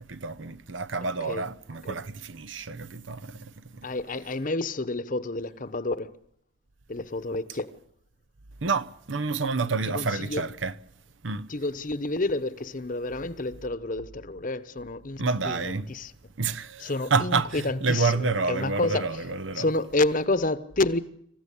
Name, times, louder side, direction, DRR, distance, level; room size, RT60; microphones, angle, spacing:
voice 1, 0.1-3.9 8.6-10.7 11.2-11.5 15.2-15.9 16.4-19.6, right 4 dB, 75° right, 0.9 m, -29 dB
voice 2, 3.8-6.1 6.9-7.7 9.9-10.4 11.5-16.1 16.8-19.2 19.6-21.0, left 2 dB, 45° left, 1.0 m, -29 dB
27.0 x 15.0 x 8.5 m
head